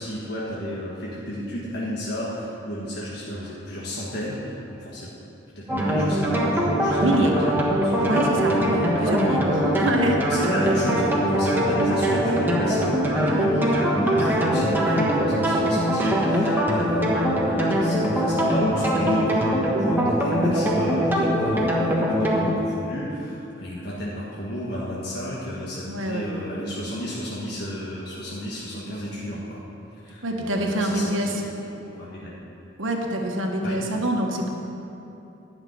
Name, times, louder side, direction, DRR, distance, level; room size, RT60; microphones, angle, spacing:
voice 1, 0.0-5.1 5.5-9.3 10.2-29.6 30.0-31.5 31.8-32.3 33.6-33.8, equal, 55° left, -6 dB, 1.6 m, -32 dB
sound 1, 5.7-22.5, equal, 10° right, 1.4 m, -22 dB
voice 2, 7.0-7.3 8.0-8.6 9.0-10.2 25.9-26.3 30.2-31.4 32.8-34.5, right 1 dB, 80° right, 1 dB, 1.4 m, -25 dB
11.5 x 6.7 x 9.6 m, 2.8 s
head